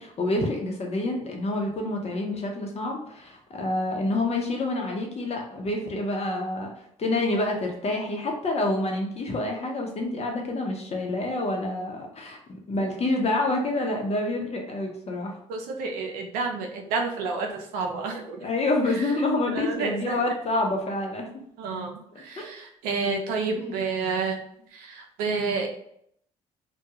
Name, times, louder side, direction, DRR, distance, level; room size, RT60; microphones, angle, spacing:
voice 1, 0.0-6.7 7.0-15.4 18.4-21.3 22.4-22.5 23.6-23.7, left 2 dB, 45° left, 1 dB, 0.8 m, -27 dB
voice 2, 15.5-18.4 19.5-20.2 21.6-24.4 24.7-25.7, right 4 dB, 85° right, 3 dB, 0.5 m, -30 dB
2.3 x 2.2 x 2.9 m, 0.71 s
supercardioid pair, 55°, 15 cm